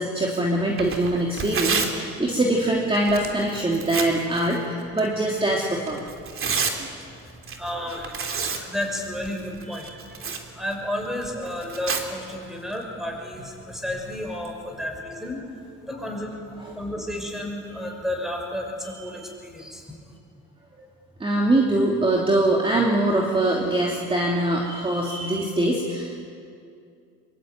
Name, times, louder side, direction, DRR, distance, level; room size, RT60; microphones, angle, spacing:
voice 1, 0.0-6.1 6.8-6.9 9.7-9.8 20.8-20.9 21.2-26.2, right 1 dB, 15° right, -2 dB, 3.0 m, -23 dB
Tearing, 0.7-14.5, right 5 dB, 45° right, 3.0 m, -33 dB
voice 2, 7.5-15.5 15.8-16.4 16.7-19.9, left 1 dB, ahead, 1 dB, 6.1 m, -32 dB
24.0 x 23.0 x 9.4 m, 2.4 s
cardioid pair, 115°, 30 cm